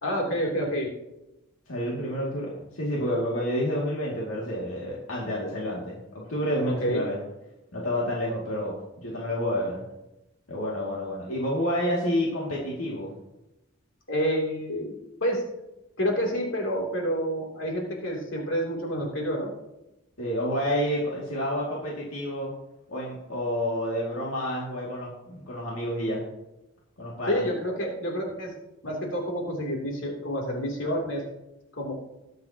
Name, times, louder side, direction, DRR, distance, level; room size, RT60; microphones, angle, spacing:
voice 1, 0.0-0.9 6.6-7.0 14.1-14.9 15.2-15.4 16.0-19.5 27.3-28.5 28.8-31.2 31.8-31.9, equal, 70° left, -1 dB, 3.0 m, -28 dB
voice 2, 1.7-7.2 7.7-9.8 10.5-13.1 20.2-22.5 22.9-26.2 27.0-27.4, equal, 85° left, -4 dB, 2.3 m, -29 dB
20.5 x 7.7 x 2.9 m, 0.94 s
head